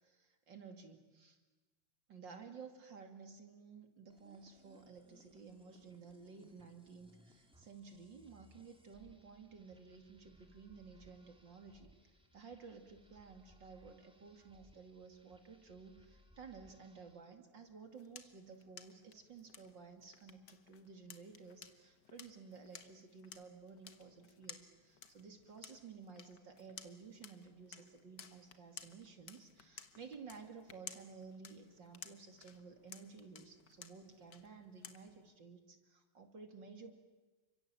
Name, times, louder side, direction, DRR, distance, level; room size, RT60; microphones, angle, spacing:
voice 1, 0.0-1.4 2.1-11.9 12.3-37.0, right 5 dB, 55° right, 5 dB, 3.2 m, -54 dB
sound 1, 4.1-17.3, equal, ahead, 2.6 m, -67 dB
sound 2, 17.6-35.3, left 7 dB, 55° left, 1.9 m, -57 dB
30.0 x 25.5 x 7.6 m, 1.2 s
omnidirectional pair, 2.4 m